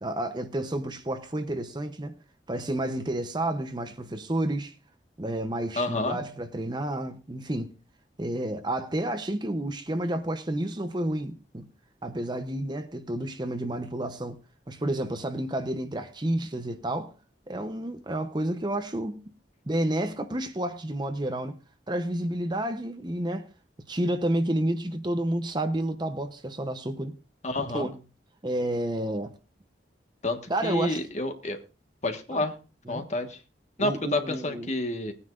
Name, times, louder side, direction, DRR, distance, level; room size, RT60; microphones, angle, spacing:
voice 1, 0.0-2.2 2.5-4.8 5.2-7.7 8.2-11.7 12.0-14.4 14.7-17.1 17.5-19.2 19.7-21.6 21.9-23.5 23.9-27.2 27.7-28.0 28.4-29.3 30.5-31.0 32.3-32.4 32.9-33.1 33.8-34.7, right 1 dB, 25° right, 0.8 m, -30 dB
voice 2, 5.8-6.2 27.4-27.9 30.2-31.6 32.0-32.5 32.9-33.4 33.8-35.1, left 2 dB, 40° left, 1.5 m, -29 dB
19.5 x 9.7 x 2.5 m
head